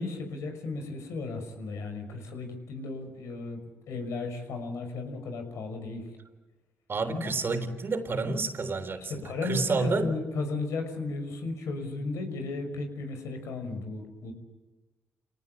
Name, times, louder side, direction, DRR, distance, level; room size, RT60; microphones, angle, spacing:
voice 1, 0.0-3.6 3.9-6.0 7.0-7.3 9.1-14.3, left 3 dB, 75° left, 5 dB, 5.9 m, -35 dB
voice 2, 6.9-10.1, right 3 dB, 50° right, 8 dB, 3.8 m, -29 dB
26.5 x 18.5 x 8.9 m, 1.2 s
supercardioid pair, 60°, 5 cm